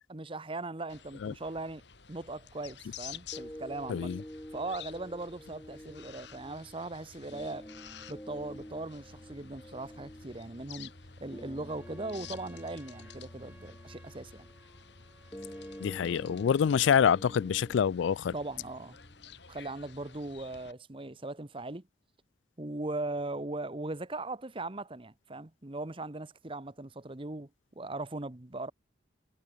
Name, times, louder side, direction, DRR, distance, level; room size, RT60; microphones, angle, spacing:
voice 1, 0.1-1.8 2.1-4.1 4.5-7.7 8.1-10.9 11.2-14.5 18.3-19.0 19.5-21.8 22.6-27.5 27.8-28.7, right 2 dB, 30° right, 1.1 m, -39 dB
sound 1, 0.9-20.7, left 6 dB, 65° left, 2.5 m, -51 dB
sound 2, 3.3-19.3, equal, 10° left, 3.5 m, -49 dB
voice 2, 3.9-4.2 15.8-18.3, left 7 dB, 80° left, 0.3 m, -26 dB
Trumpet, 11.6-17.1, right 1 dB, 10° right, 5.0 m, -61 dB
head